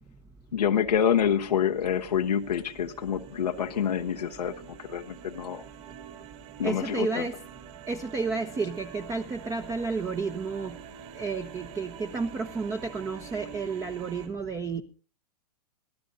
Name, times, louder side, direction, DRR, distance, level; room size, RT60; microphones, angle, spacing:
voice 1, 0.5-4.5 4.8-5.6 6.6-7.2, left 8 dB, 90° left, 4 dB, 1.0 m, -27 dB
sound 1, 0.9-14.3, right 9 dB, 50° right, 4.5 m, -47 dB
voice 2, 6.6-7.3 7.9-10.8 11.1-14.8, right 4 dB, 15° right, 8 dB, 0.9 m, -31 dB
23.0 x 14.0 x 2.7 m, 0.38 s
hypercardioid pair, 125°, 20 cm